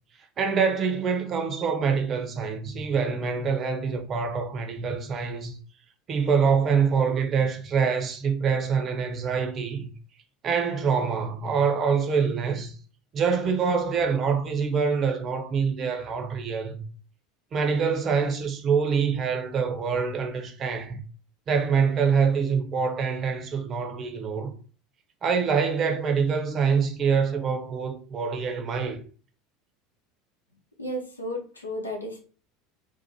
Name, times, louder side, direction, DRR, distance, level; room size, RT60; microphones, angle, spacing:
voice 1, 0.4-5.6 6.1-9.9 10.4-12.7 13.1-16.8 17.5-21.0 21.5-24.5 25.2-29.0, right 6 dB, 35° right, 0.7 m, -25 dB
voice 2, 30.8-32.2, equal, 85° left, 0.7 m, -33 dB
2.7 x 2.5 x 4.2 m
figure-of-eight pair, 75°, 0 cm